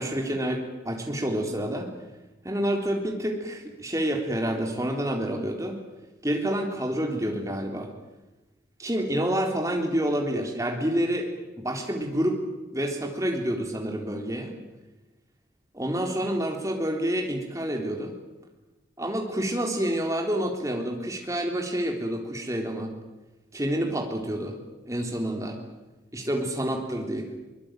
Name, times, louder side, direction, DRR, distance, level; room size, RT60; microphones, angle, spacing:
voice 1, 0.0-1.9 2.4-5.8 6.2-7.9 8.8-11.3 11.6-12.4 12.7-14.6 15.7-18.1 19.0-22.9 23.5-24.6 24.9-25.6 26.1-27.3, right 1 dB, 15° right, 2 dB, 3.7 m, -28 dB
23.5 x 21.0 x 9.2 m, 1.1 s
head